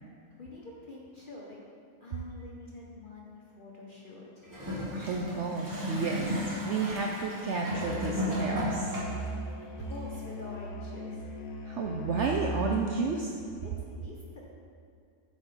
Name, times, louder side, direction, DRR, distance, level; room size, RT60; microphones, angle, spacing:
voice 1, 0.4-1.6 2.0-4.4 9.8-11.3 13.6-14.4, left 2 dB, 50° left, -4 dB, 0.6 m, -46 dB
Gurgling / Toilet flush, 4.4-9.3 10.1-10.2, equal, 15° right, 1.3 m, -34 dB
voice 2, 4.9-6.4 6.6-8.9 11.6-13.3, right 4 dB, 70° right, 0 dB, 0.7 m, -31 dB
Musical instrument, 7.7-12.8, equal, 80° left, 1.3 m, -38 dB
7.5 x 4.1 x 5.1 m, 2.3 s
omnidirectional pair, 1.6 m